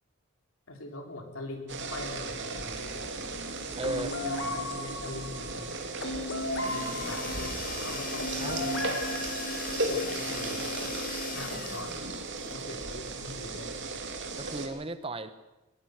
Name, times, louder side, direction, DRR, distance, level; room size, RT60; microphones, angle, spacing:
voice 1, 0.7-3.1 3.6-5.7 6.6-8.9 9.7-10.6 11.3-12.0 12.5-13.8, left 2 dB, 70° left, 4 dB, 3.8 m, -42 dB
sound 1, 1.7-14.7, right 3 dB, 55° right, 2.9 m, -36 dB
voice 2, 3.7-4.1 8.4-8.7 14.3-15.3, right 2 dB, 25° right, 11 dB, 1.2 m, -35 dB
sound 2, 3.8-10.0, left 1 dB, 55° left, 2.1 m, -36 dB
sound 3, 6.3-12.2, left 7 dB, 40° left, 0.9 m, -40 dB
21.0 x 20.0 x 6.6 m, 0.99 s
head